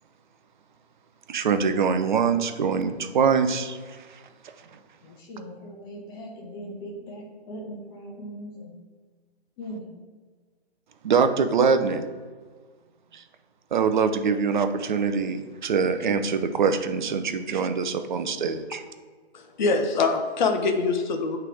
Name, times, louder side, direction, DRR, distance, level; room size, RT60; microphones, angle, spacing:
voice 1, 1.3-4.0 11.0-12.0 13.1-13.2 13.7-18.8, right 5 dB, 45° right, 9 dB, 0.6 m, -24 dB
voice 2, 5.0-8.8 9.6-9.9, equal, 20° left, 0 dB, 1.0 m, -39 dB
voice 3, 19.3-21.4, left 4 dB, 45° left, 6 dB, 0.8 m, -24 dB
8.2 x 3.3 x 3.5 m, 1.5 s
hypercardioid pair, 150°, 32 cm